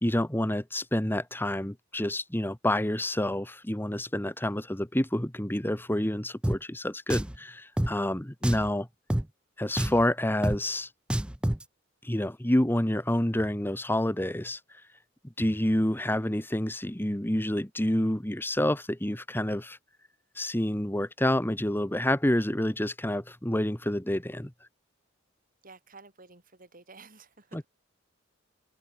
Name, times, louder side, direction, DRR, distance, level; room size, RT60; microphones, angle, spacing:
voice 1, 0.0-8.9 9.6-10.9 12.0-14.8 15.4-19.8 20.3-24.5 27.5-27.6, left 1 dB, 10° left, 1.5 m, -28 dB
Drum, 6.4-6.6 7.1-7.4 7.8-7.9 8.4-8.7 9.1-9.2 9.8-10.0 10.4-10.6 11.1-11.6, right 1 dB, 5° right, 0.3 m, -27 dB
voice 2, 8.0-8.3 25.6-27.7, right 3 dB, 45° right, 5.7 m, -52 dB
open air
head